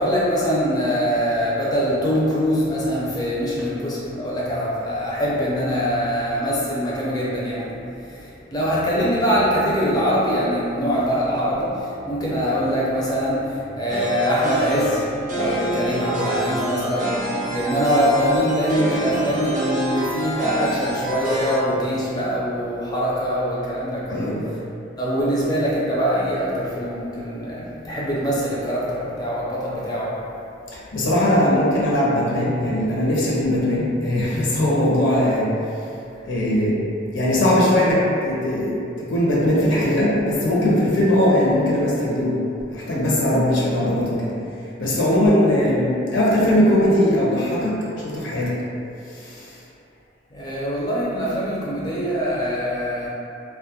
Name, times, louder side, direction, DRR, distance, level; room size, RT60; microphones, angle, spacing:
voice 1, 0.0-24.6 25.0-30.3 36.1-36.4 44.8-45.0 50.3-53.1, equal, 20° left, -7 dB, 0.4 m, -23 dB
sound 1, 13.9-21.6, right 1 dB, 45° right, 0.5 m, -27 dB
voice 2, 24.1-24.4 27.5-28.0 30.7-35.5 36.2-36.8 37.1-42.4 42.7-44.3 44.8-48.6 49.1-49.6, left 1 dB, 75° left, -6 dB, 0.5 m, -20 dB
2.2 x 2.0 x 2.8 m, 2.6 s
head